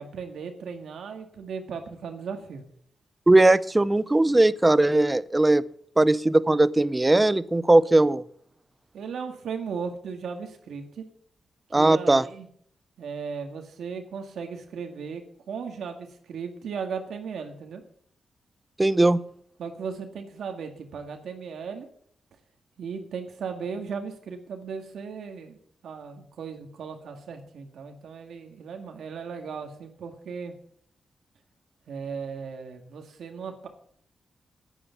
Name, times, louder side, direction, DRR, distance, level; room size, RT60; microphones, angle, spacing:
voice 1, 0.0-2.6 8.9-11.0 11.7-12.5 13.0-17.8 19.6-21.9 22.8-25.6 25.8-30.5 31.9-33.7, right 6 dB, 90° right, 4 dB, 1.9 m, -36 dB
voice 2, 3.3-5.6 6.0-8.2 11.7-12.2 18.8-19.2, right 2 dB, 15° right, 17 dB, 0.5 m, -19 dB
10.0 x 9.7 x 7.0 m, 0.63 s
wide cardioid pair, 130°, 0 cm